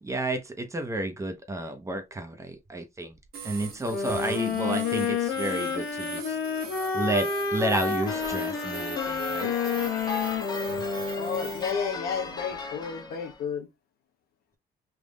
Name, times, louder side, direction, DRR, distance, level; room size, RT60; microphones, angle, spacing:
voice 1, 0.0-3.2 3.4-6.4 6.9-9.5, right 2 dB, 15° right, 0.8 m, -31 dB
sound 1, 3.3-11.7, right 7 dB, 60° right, 1.1 m, -41 dB
sound 2, 3.9-11.8, left 6 dB, 85° left, 1.3 m, -30 dB
sound 3, 8.0-13.4, left 4 dB, 25° left, 0.9 m, -38 dB
voice 2, 11.2-13.7, left 7 dB, 65° left, 1.0 m, -32 dB
3.7 x 2.5 x 3.7 m
cardioid pair, 110°, 17 cm